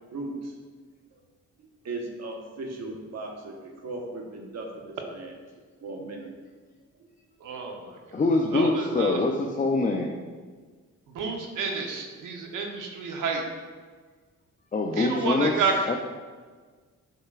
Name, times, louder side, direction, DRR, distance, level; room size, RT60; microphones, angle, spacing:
voice 1, 0.1-0.5 1.6-5.3 5.8-6.3, right 2 dB, 55° right, 1 dB, 1.2 m, -37 dB
voice 2, 7.4-8.2 8.5-9.2 11.1-13.4 14.9-15.9, right 4 dB, 80° right, 2 dB, 1.0 m, -30 dB
voice 3, 8.1-10.1 14.7-15.5 15.9-16.0, left 3 dB, 25° left, 2 dB, 0.5 m, -24 dB
7.6 x 5.6 x 2.5 m, 1.5 s
cardioid pair, 85°, 31 cm